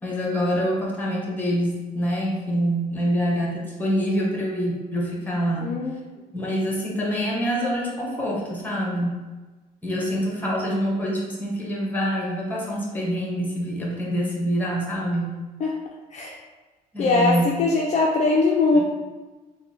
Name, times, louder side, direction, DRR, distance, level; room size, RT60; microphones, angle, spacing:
voice 1, 0.0-5.7 6.3-9.2 9.8-15.4 16.9-17.5 18.7-18.8, equal, 10° left, -3 dB, 1.0 m, -25 dB
voice 2, 5.6-6.1 15.6-15.8 16.1-16.3 17.0-18.8, left 3 dB, 45° left, -2 dB, 0.4 m, -21 dB
3.3 x 2.2 x 4.1 m, 1.2 s
cardioid pair, 110°, 17 cm